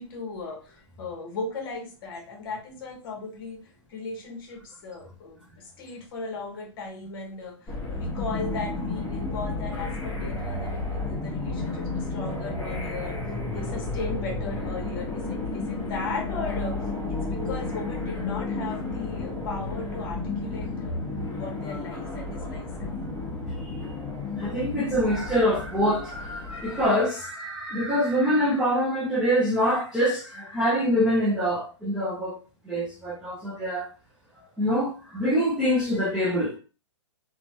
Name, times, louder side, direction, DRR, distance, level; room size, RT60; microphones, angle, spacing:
voice 1, 0.0-21.0 21.3-23.0 24.1-24.4, left 3 dB, 45° left, 0.9 m, -37 dB
sound 1, 7.7-26.9, left 2 dB, 10° left, 1.0 m, -32 dB
voice 2, 24.4-32.4 32.6-33.9 34.6-36.6, equal, 5° right, 0.3 m, -25 dB
3.0 x 2.1 x 2.6 m
hypercardioid pair, 160°, 16 cm